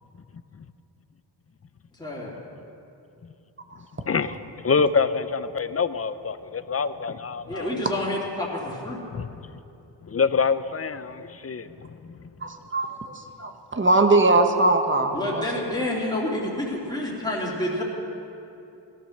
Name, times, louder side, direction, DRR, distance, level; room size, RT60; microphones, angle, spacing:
voice 1, 2.0-2.4 7.5-9.0 15.1-17.8, left 1 dB, 10° left, -6 dB, 2.8 m, -28 dB
voice 2, 4.1-7.8 9.1-9.6 10.0-12.1, left 5 dB, 35° left, 13 dB, 0.5 m, -26 dB
voice 3, 12.4-15.4, right 2 dB, 25° right, 5 dB, 1.2 m, -21 dB
17.0 x 12.5 x 6.5 m, 2.8 s
wide cardioid pair, 120°, 43 cm